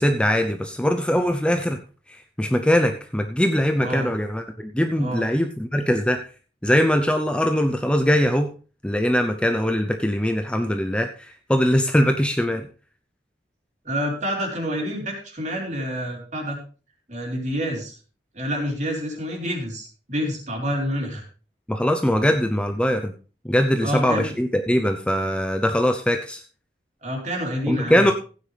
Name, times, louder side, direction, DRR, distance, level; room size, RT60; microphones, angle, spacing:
voice 1, 0.0-1.8 2.1-6.2 6.6-8.5 8.8-12.7 21.7-23.1 23.4-26.4 27.7-28.1, equal, 5° left, 6 dB, 0.6 m, -21 dB
voice 2, 3.8-4.1 5.0-5.3 13.8-16.6 17.1-17.9 18.3-21.2 22.2-22.3 23.8-24.3 27.0-28.1, equal, 40° right, 1 dB, 3.8 m, -28 dB
15.5 x 9.3 x 3.3 m, 0.37 s
head